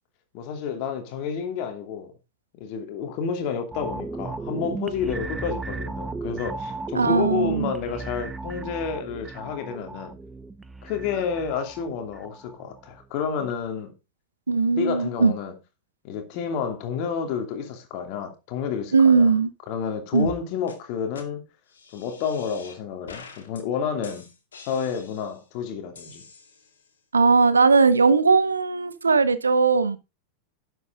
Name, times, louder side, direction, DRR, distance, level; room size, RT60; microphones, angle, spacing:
voice 1, 0.3-2.1 2.5-10.2 10.8-13.9 14.8-15.5 16.0-19.3 19.7-21.4 21.9-24.3 24.7-26.2, left 6 dB, 45° left, 2.7 m, -30 dB
sound 1, 3.7-13.0 13.4-13.5, right 3 dB, 10° right, 0.6 m, -36 dB
voice 2, 6.9-7.7 14.5-15.3 18.9-19.5 20.1-20.3 27.1-30.0, right 4 dB, 75° right, 0.9 m, -19 dB
sound 2, 20.2-20.4 20.7-20.8 21.1-21.2 21.7-22.8 23.1-23.6 24.0-25.4 26.0-26.9, left 5 dB, 65° left, 2.4 m, -45 dB
11.0 x 7.9 x 3.8 m
figure-of-eight pair, 90°, 0 cm